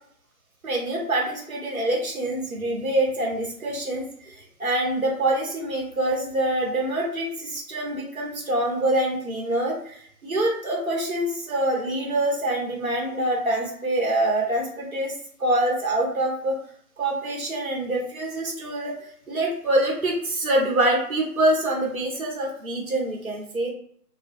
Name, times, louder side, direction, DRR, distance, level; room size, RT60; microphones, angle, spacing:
voice 1, 0.6-15.1 15.4-16.6 17.0-18.9 19.3-23.7, right 1 dB, 60° right, -1 dB, 1.0 m, -25 dB
2.4 x 2.1 x 2.5 m, 0.64 s
figure-of-eight pair, 155°, 47 cm